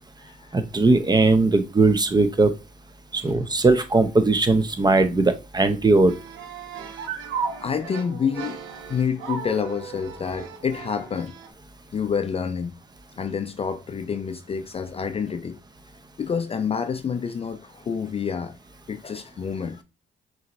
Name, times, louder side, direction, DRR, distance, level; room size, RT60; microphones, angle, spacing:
voice 1, 0.5-2.5 3.1-6.1, right 3 dB, 20° right, 0.6 m, -19 dB
sound 1, 6.1-11.5, right 6 dB, 90° right, 0.9 m, -35 dB
voice 2, 7.6-8.6 8.9-11.4 11.9-12.7 13.2-15.6 16.2-18.6 18.9-19.8, left 6 dB, 30° left, 0.4 m, -28 dB
5.5 x 3.0 x 2.6 m
cardioid pair, 90°, 20 cm